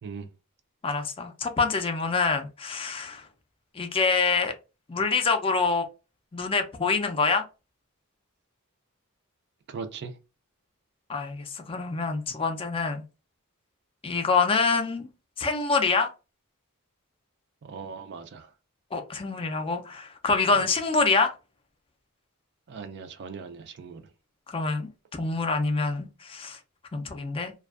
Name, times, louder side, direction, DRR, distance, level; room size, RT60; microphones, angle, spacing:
voice 1, 0.8-3.3 3.7-4.5 4.9-5.9 6.3-7.5 11.1-13.0 14.0-15.1 15.4-16.1 18.9-21.3 24.5-26.6 26.9-27.5, left 4 dB, 25° left, 0.4 m, -26 dB
voice 2, 9.7-10.2 17.6-18.5 20.5-20.7 22.7-24.0, right 5 dB, 50° right, 0.4 m, -39 dB
2.5 x 2.2 x 2.3 m
head